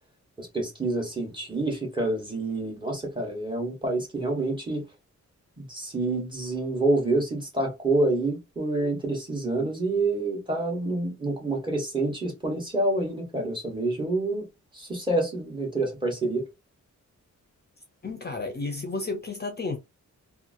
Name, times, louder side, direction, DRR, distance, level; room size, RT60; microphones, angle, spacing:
voice 1, 0.4-4.8 5.6-14.5 14.7-16.4, right 2 dB, 15° right, 1.2 m, -27 dB
voice 2, 18.0-19.8, left 3 dB, 35° left, 0.6 m, -32 dB
2.8 x 2.4 x 2.5 m
wide cardioid pair, 145°, 30 cm